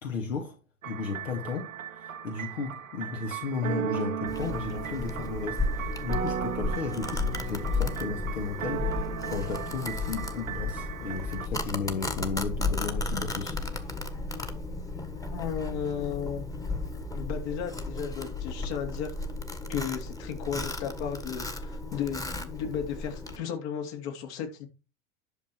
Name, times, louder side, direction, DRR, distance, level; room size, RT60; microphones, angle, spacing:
voice 1, 0.0-0.6 0.9-13.9, left 5 dB, 70° left, 2.4 m, -34 dB
sound 1, 0.8-11.5, right 9 dB, 80° right, 1.0 m, -36 dB
Domestic sounds home sounds, 4.3-23.4, left 3 dB, 10° left, 1.6 m, -34 dB
voice 2, 15.3-16.5 17.1-19.1 19.7-24.7, left 8 dB, 55° left, 3.1 m, -34 dB
11.5 x 6.6 x 4.6 m
figure-of-eight pair, 85°, 40 cm